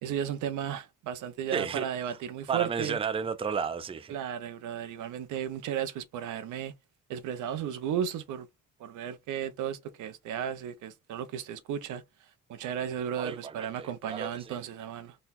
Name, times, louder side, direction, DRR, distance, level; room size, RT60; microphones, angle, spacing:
voice 1, 0.0-3.0 4.1-6.7 7.1-8.5 8.8-12.0 12.5-15.2, right 9 dB, 85° right, 0.8 m, -34 dB
voice 2, 1.5-1.9 2.5-4.1 13.2-14.6, right 6 dB, 20° right, 0.5 m, -33 dB
3.9 x 2.3 x 4.1 m
cardioid pair, 90°, 30 cm